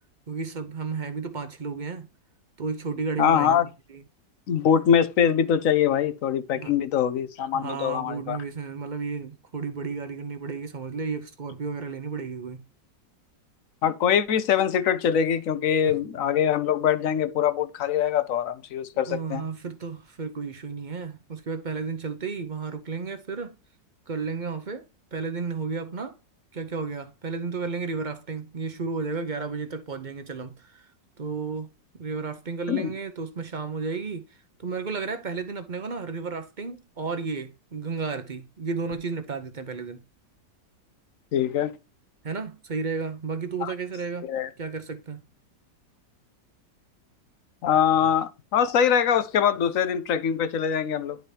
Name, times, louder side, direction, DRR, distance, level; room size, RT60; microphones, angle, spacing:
voice 1, 0.3-2.1 2.6-4.0 6.5-6.8 7.5-12.6 15.8-15.9 19.1-23.5 24.1-24.8 25.1-26.2 26.5-30.9 31.2-31.7 31.9-40.0 42.2-44.3 44.6-45.2, right 4 dB, 40° right, 0.7 m, -33 dB
voice 2, 3.2-3.6 4.5-8.4 13.8-19.4 32.7-32.9 41.3-41.7 43.6-43.7 44.3-44.5 47.6-51.2, left 8 dB, 60° left, 1.0 m, -23 dB
10.5 x 5.0 x 2.8 m
omnidirectional pair, 1.9 m